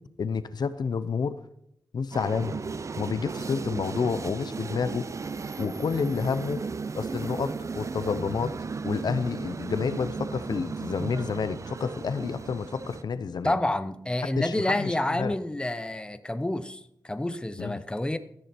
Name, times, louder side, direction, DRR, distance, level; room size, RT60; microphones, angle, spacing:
voice 1, 0.2-1.4 1.9-2.6 3.0-5.1 5.6-6.6 7.0-8.6 8.8-13.5 14.4-15.3 17.6-17.8, left 5 dB, 75° left, 13 dB, 0.8 m, -29 dB
sound 1, 2.1-13.0, right 4 dB, 45° right, 0.5 m, -35 dB
voice 2, 13.4-18.2, left 1 dB, 15° left, 11 dB, 0.8 m, -29 dB
14.0 x 9.9 x 4.4 m, 0.76 s
wide cardioid pair, 90°, 7 cm